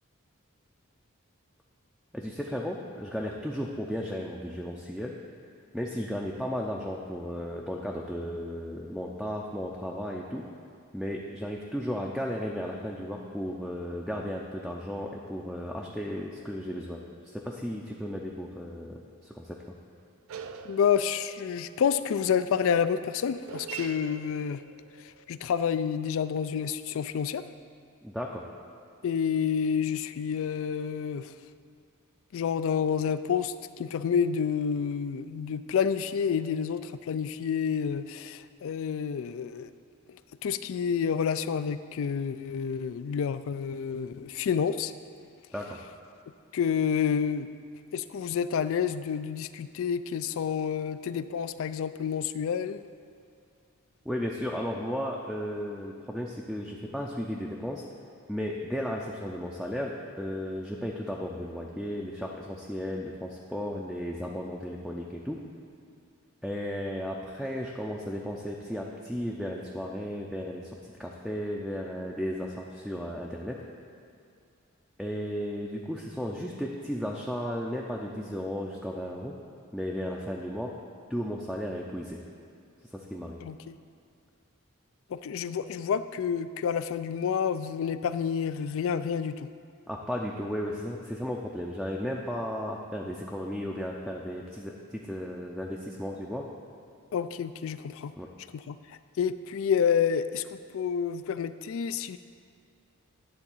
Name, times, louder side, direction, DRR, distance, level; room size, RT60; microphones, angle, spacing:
voice 1, 2.1-5.1 5.7-10.5 10.9-19.6 28.0-28.4 45.5-45.8 54.1-57.8 58.3-65.4 66.4-70.7 71.0-73.6 75.0-79.3 79.7-80.8 81.1-82.2 82.9-83.4 89.9-96.5 98.2-98.3, equal, ahead, -2 dB, 0.5 m, -34 dB
sound 1, 16.0-17.6 18.3-18.4 18.9-19.0 20.0-26.3, right 7 dB, 70° right, 0.4 m, -46 dB
voice 2, 20.6-24.6 25.0-27.5 29.0-31.3 32.3-39.7 40.4-44.9 46.5-47.5 47.9-52.8 83.4-83.8 85.1-89.5 97.1-98.1 98.5-102.2, left 7 dB, 65° left, 13 dB, 0.3 m, -29 dB
9.9 x 3.8 x 7.1 m, 2.4 s
head